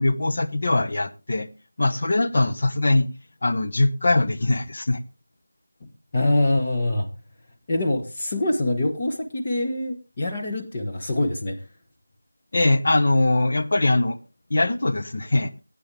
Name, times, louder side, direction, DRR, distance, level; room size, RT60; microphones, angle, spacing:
voice 1, 0.0-1.5 1.8-3.1 3.4-5.0 12.5-14.2 14.5-15.5, left 2 dB, 45° left, 1.1 m, -21 dB
voice 2, 6.1-7.1 7.7-11.6, left 1 dB, 25° left, 1.4 m, -24 dB
17.0 x 9.0 x 3.4 m
figure-of-eight pair, 175°, 0 cm